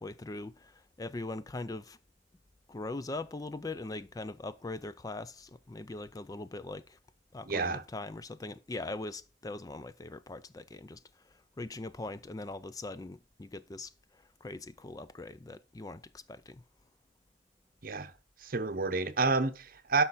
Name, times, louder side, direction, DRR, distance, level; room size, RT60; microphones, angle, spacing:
voice 1, 0.0-2.0 2.7-7.0 7.3-11.0 11.6-13.9 14.4-16.6, left 2 dB, 20° left, 0.4 m, -41 dB
voice 2, 7.5-7.8 17.8-18.1 18.4-20.0, right 4 dB, 50° right, 1.0 m, -29 dB
12.5 x 5.8 x 4.2 m
head